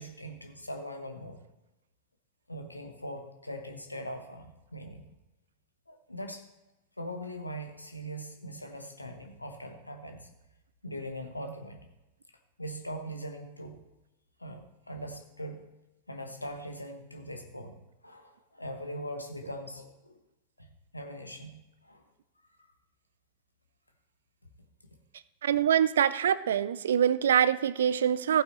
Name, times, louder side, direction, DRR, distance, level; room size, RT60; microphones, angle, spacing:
voice 1, 0.0-1.4 2.5-5.0 5.9-6.5 7.0-10.3 10.8-11.8 12.6-13.8 14.4-15.6 16.1-17.8 18.0-20.2 20.6-20.7 20.9-21.6 21.8-22.0 22.6-22.7, equal, 85° left, 1.1 m, -41 dB
voice 2, 25.4-28.4, right 9 dB, 65° right, 0.4 m, -24 dB
15.0 x 8.7 x 3.1 m
figure-of-eight pair, 90°, 0 cm